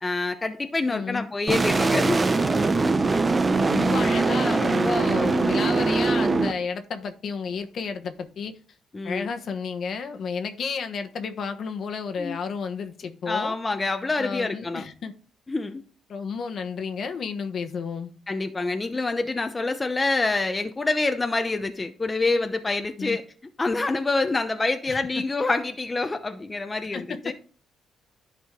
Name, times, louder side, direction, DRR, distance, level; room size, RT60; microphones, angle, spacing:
voice 1, 0.0-2.2 8.9-9.3 12.2-12.4 13.3-14.8 15.5-15.8 18.3-23.2 23.6-27.3, left 3 dB, 25° left, 0.7 m, -26 dB
voice 2, 0.9-1.2 3.5-8.5 9.0-13.5 14.2-15.1 16.1-18.1 23.0-23.2 24.9-25.0 26.9-27.3, left 5 dB, 60° left, 1.2 m, -31 dB
sound 1, 1.5-6.5, right 3 dB, 25° right, 0.8 m, -22 dB
11.0 x 5.0 x 3.8 m
cardioid pair, 90°, 0 cm